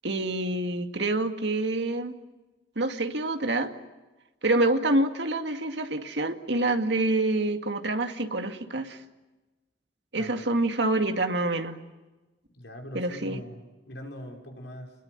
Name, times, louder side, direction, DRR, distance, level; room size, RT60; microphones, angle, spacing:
voice 1, 0.0-2.1 2.8-3.7 4.4-9.0 10.1-11.8 12.9-13.4, right 2 dB, 80° right, 6 dB, 2.2 m, -27 dB
voice 2, 10.2-10.6 12.5-15.0, left 1 dB, 85° left, 1 dB, 6.1 m, -42 dB
29.5 x 21.5 x 8.2 m, 1.1 s
head